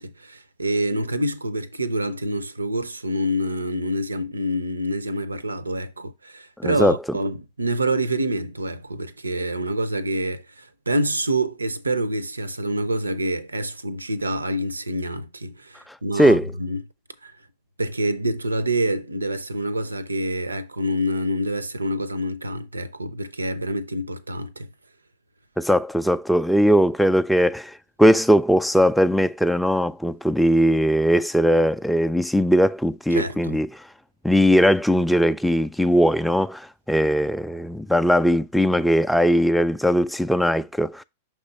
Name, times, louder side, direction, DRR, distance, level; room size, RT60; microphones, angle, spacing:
voice 1, 0.0-16.8 17.2-17.3 17.8-24.7 33.1-33.6, right 1 dB, 85° right, 0.5 m, -26 dB
voice 2, 6.6-7.0 16.2-16.5 25.6-33.8 34.2-41.0, equal, ahead, 0.3 m, -19 dB
6.1 x 3.1 x 5.2 m
figure-of-eight pair, 100°, 0 cm